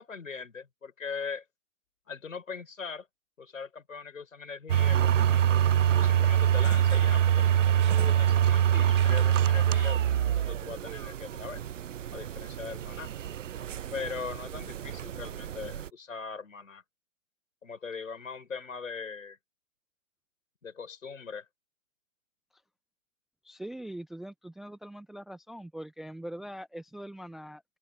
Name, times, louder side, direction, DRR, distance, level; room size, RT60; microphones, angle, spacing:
voice 1, 0.0-1.4 2.1-3.1 3.4-5.4 5.9-10.0 10.3-11.6 12.1-13.1 13.9-16.8 17.6-19.4 20.6-21.5, left 5 dB, 75° left, 6.0 m, -40 dB
sound 1, 4.7-15.9, right 10 dB, 65° right, 0.6 m, -25 dB
sound 2, 6.2-10.1, left 15 dB, 35° left, 5.5 m, -60 dB
sound 3, 6.9-10.6, right 15 dB, 40° right, 7.2 m, -51 dB
voice 2, 23.4-27.6, right 1 dB, ahead, 0.6 m, -42 dB
open air
figure-of-eight pair, 140°, 40 cm